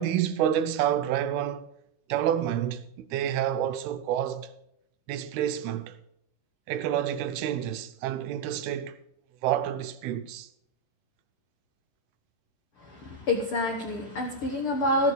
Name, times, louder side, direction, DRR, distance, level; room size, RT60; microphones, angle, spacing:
voice 1, 0.0-1.7 2.1-4.5 5.1-6.0 6.7-9.0 9.4-10.5, right 10 dB, 85° right, 2.7 m, -28 dB
voice 2, 12.8-15.1, left 1 dB, 80° left, 1.2 m, -27 dB
14.5 x 7.0 x 6.9 m
omnidirectional pair, 4.5 m